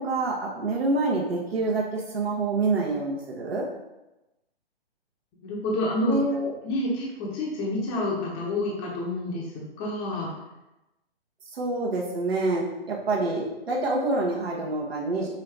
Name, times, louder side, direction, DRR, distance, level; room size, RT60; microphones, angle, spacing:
voice 1, 0.0-3.6 6.1-6.5 11.5-15.3, right 2 dB, 75° right, -3 dB, 1.1 m, -27 dB
voice 2, 5.4-6.2 6.6-10.3, left 1 dB, 20° left, -3 dB, 0.7 m, -28 dB
5.5 x 2.6 x 3.3 m, 0.97 s
hypercardioid pair, 140°, 31 cm